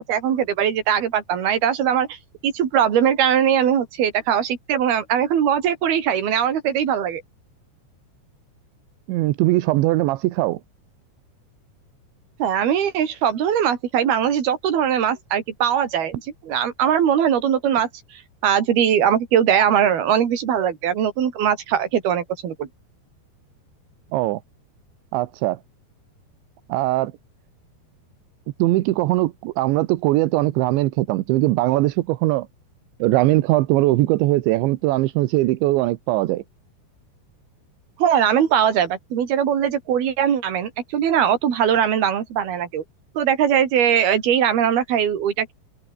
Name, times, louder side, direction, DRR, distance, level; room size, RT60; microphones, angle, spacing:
voice 1, 0.0-2.2 2.4-7.2 12.4-17.9 18.4-22.7 38.0-42.8 43.2-45.5, right 9 dB, 60° right, 4.8 m, -20 dB
voice 2, 9.1-10.6 24.1-24.4 25.1-25.6 26.7-27.1 28.6-32.5 33.0-36.4, right 18 dB, 85° right, 3.3 m, -20 dB
omnidirectional pair, 5.2 m